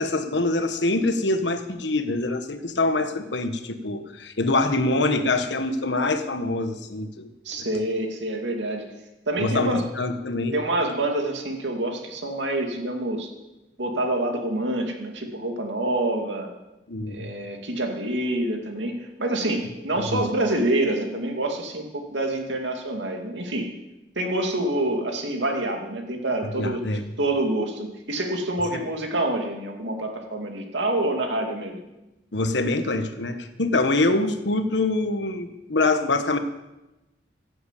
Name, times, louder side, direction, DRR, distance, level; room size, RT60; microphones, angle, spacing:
voice 1, 0.0-7.7 9.4-10.5 16.9-17.3 20.0-20.3 26.5-27.0 28.7-28.8 32.3-36.4, left 2 dB, 75° left, 8 dB, 1.3 m, -25 dB
voice 2, 7.4-8.9 9.3-9.8 10.5-13.3 13.8-16.5 17.1-23.7 24.2-26.8 27.2-31.8, right 1 dB, 80° right, 3 dB, 2.4 m, -27 dB
16.0 x 7.9 x 8.3 m, 1.0 s
head